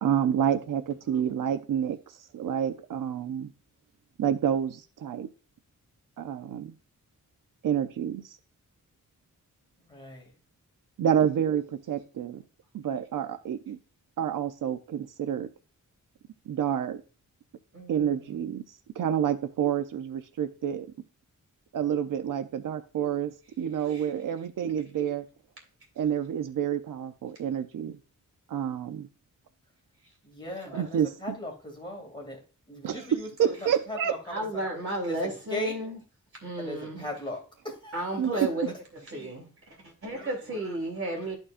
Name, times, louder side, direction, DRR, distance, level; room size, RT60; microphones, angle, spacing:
voice 1, 0.0-3.5 4.2-5.3 6.2-6.7 7.6-8.4 11.0-12.4 12.7-13.8 14.2-15.5 16.5-17.0 17.9-20.9 21.7-25.3 26.0-28.0 28.5-29.1 30.7-31.4 32.8-34.2 38.2-38.5, right 9 dB, 85° right, 0.6 m, -29 dB
voice 2, 9.9-10.3 30.2-32.4 32.7-34.7 35.1-35.8 36.6-37.4 37.6-38.4, left 1 dB, 15° left, 2.4 m, -38 dB
voice 3, 17.7-18.3 23.8-24.1 30.6-30.9 34.3-36.0 36.4-37.1 37.9-38.7 39.1-39.4 40.0-41.3, right 1 dB, 45° right, 3.0 m, -33 dB
12.5 x 4.5 x 2.5 m
wide cardioid pair, 160°, 32 cm